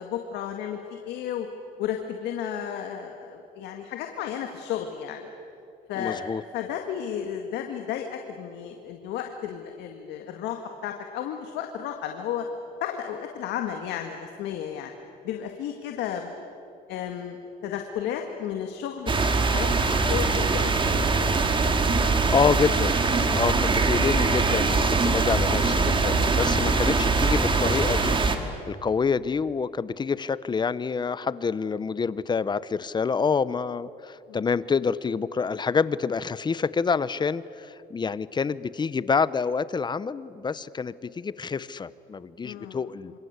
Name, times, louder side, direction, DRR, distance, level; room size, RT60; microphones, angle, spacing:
voice 1, 0.0-1.5 1.8-5.3 5.9-12.5 12.8-14.9 15.2-16.3 16.9-17.4 17.6-21.1 34.3-34.4 42.4-42.8, left 9 dB, 85° left, 4 dB, 1.9 m, -33 dB
voice 2, 5.9-6.4 22.0-23.0 23.3-28.2 28.7-43.1, left 5 dB, 25° left, 17 dB, 0.8 m, -27 dB
sound 1, 19.1-28.4, right 3 dB, 30° right, 2.5 m, -22 dB
27.0 x 26.5 x 8.2 m, 2.8 s
cardioid pair, 110°, 17 cm